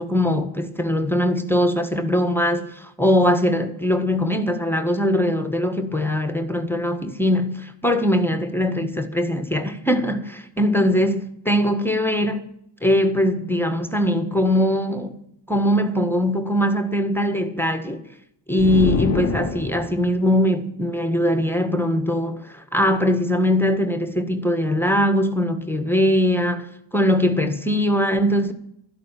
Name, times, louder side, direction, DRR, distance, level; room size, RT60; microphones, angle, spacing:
voice 1, 0.0-12.4 12.8-15.2 15.5-18.0 18.5-26.7 26.9-28.5, left 1 dB, 5° left, 1.5 m, -21 dB
sound 1, 18.6-20.2, left 4 dB, 35° left, 0.8 m, -26 dB
13.0 x 11.5 x 9.0 m
wide cardioid pair, 60°, 47 cm